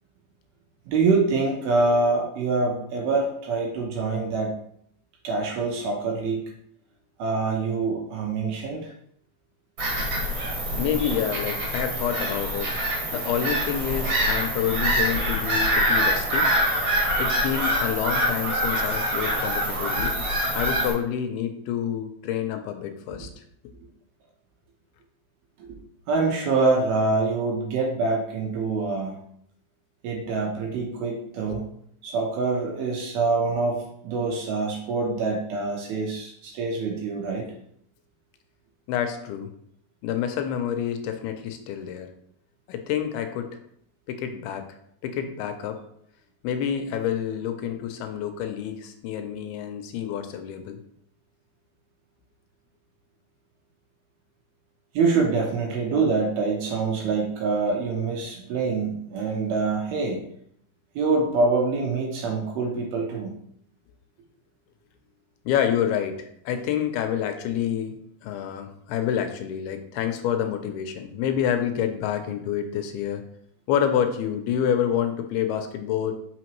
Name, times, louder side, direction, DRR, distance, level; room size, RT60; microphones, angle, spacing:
voice 1, 0.9-4.6 5.2-6.4 7.2-8.9 25.6-25.8 26.1-29.1 30.0-31.7 32.0-37.5 54.9-60.2 61.0-63.3, right 3 dB, 80° right, 0 dB, 2.7 m, -25 dB
Bird vocalization bird call bird song / Gull seagull, 9.8-20.9, equal, 50° right, 2.8 m, -25 dB
voice 2, 10.8-12.8 13.1-16.5 17.2-20.2 20.5-23.3 31.4-31.6 38.9-39.5 40.0-42.1 42.7-43.6 44.1-44.8 45.0-45.8 46.4-50.8 65.5-68.0 68.2-73.2 73.7-76.1, left 9 dB, 85° left, 6 dB, 2.5 m, -28 dB
6.0 x 5.7 x 3.1 m, 0.70 s
omnidirectional pair, 4.5 m